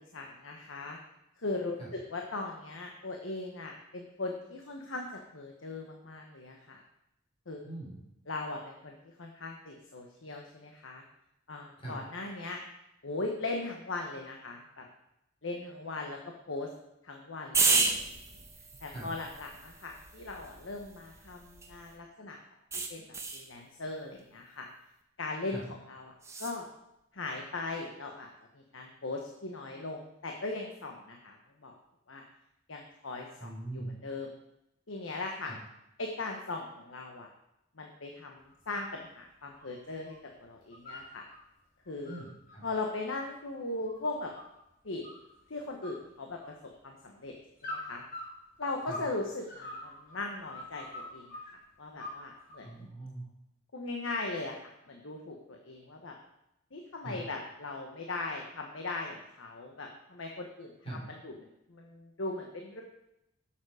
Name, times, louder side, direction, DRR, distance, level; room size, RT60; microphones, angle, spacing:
voice 1, 0.1-1.0 1.4-6.8 7.5-7.6 8.3-11.0 11.5-12.6 13.0-14.8 15.4-16.7 17.0-18.4 18.8-22.4 22.9-24.7 25.2-26.1 26.4-26.7 27.1-28.3 28.5-31.7 32.1-32.2 32.7-34.3 34.9-35.5 36.0-37.3 37.8-41.3 41.9-42.2 42.6-44.3 44.8-45.0 45.5-46.5 46.8-47.3 47.6-48.0 48.6-51.4 51.8-52.9 53.7-56.1 56.7-62.8, left 2 dB, 80° left, 2 dB, 1.2 m, -39 dB
voice 2, 7.6-8.0 11.8-12.0 18.9-19.1 25.5-25.6 33.4-33.9 35.5-35.6 42.0-42.6 48.9-49.0 52.6-53.3 57.0-57.2 60.8-61.0, right 2 dB, 30° left, -5 dB, 4.6 m, -41 dB
sound 1, 17.5-21.9 22.7-23.5 26.2-26.6, right 4 dB, 15° right, 1.0 m, -32 dB
sound 2, 38.5-38.9 39.3-40.2 40.5-41.4 41.8-44.6 45.0-45.5 45.8-46.8 47.6-49.1 49.4-51.5 52.0-52.7, left 1 dB, 45° left, 3.0 m, -44 dB
11.5 x 7.3 x 4.9 m, 0.85 s
head